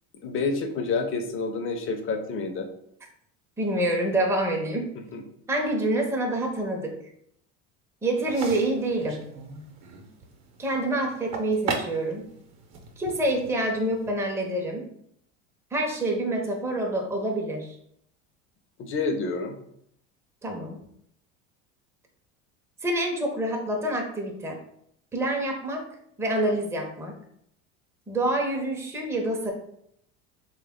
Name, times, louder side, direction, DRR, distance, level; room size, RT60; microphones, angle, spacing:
voice 1, 0.2-2.7 5.1-5.2 18.8-19.6, left 4 dB, 35° left, 6 dB, 0.6 m, -28 dB
voice 2, 3.6-4.9 5.5-7.0 8.0-9.2 10.6-12.3 13.0-14.9 15.7-17.8 20.4-20.8 22.8-24.6 25.1-25.9 26.2-27.1 28.1-29.5, right 1 dB, 5° right, 1 dB, 0.6 m, -27 dB
sound 1, 8.2-14.1, right 4 dB, 45° right, 0.8 m, -38 dB
3.3 x 2.3 x 3.5 m, 0.72 s
supercardioid pair, 105°, 37 cm